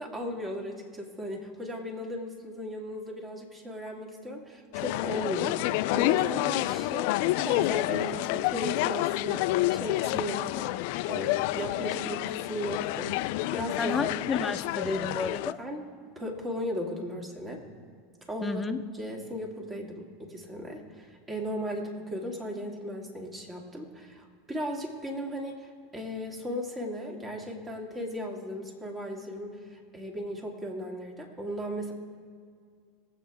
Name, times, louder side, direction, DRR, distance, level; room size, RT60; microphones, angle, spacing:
voice 1, 0.0-10.7 11.0-14.0 15.6-15.8 16.2-17.6 18.3-31.9, equal, 20° right, 1 dB, 2.5 m, -36 dB
sound 1, 4.7-15.5, left 18 dB, 65° left, 0.4 m, -29 dB
voice 2, 13.8-15.6 18.4-18.8, left 3 dB, 15° left, 6 dB, 1.0 m, -31 dB
23.0 x 8.2 x 3.6 m, 2.1 s
hypercardioid pair, 100°, 0 cm